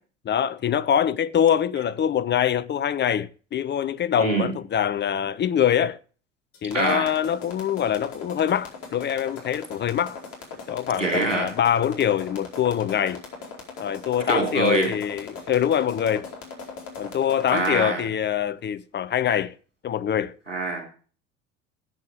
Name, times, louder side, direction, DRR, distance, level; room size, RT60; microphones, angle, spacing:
voice 1, 0.2-6.0 6.6-10.2 10.7-13.2 13.8-16.3 17.0-19.5 19.8-20.3, left 9 dB, 30° left, 0.6 m, -24 dB
voice 2, 4.2-4.5 6.7-7.1 11.0-11.5 14.3-14.9 17.5-18.0 20.5-20.8, right 3 dB, 90° right, 3.2 m, -24 dB
sound 1, 6.5-17.8, left 5 dB, 50° left, 4.6 m, -39 dB
14.0 x 8.6 x 5.0 m
figure-of-eight pair, 60°, 36 cm